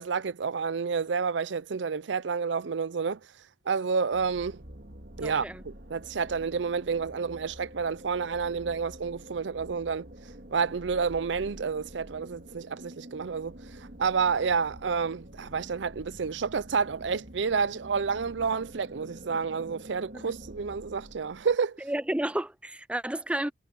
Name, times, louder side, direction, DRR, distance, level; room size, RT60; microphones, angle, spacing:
voice 1, 0.0-3.2 3.7-4.6 5.2-10.1 10.5-21.8, right 5 dB, 70° right, 0.5 m, -29 dB
sound 1, 4.1-21.6, right 1 dB, 55° right, 2.6 m, -47 dB
voice 2, 5.2-5.6 20.1-20.3 21.8-23.5, right 1 dB, 5° right, 0.4 m, -31 dB
head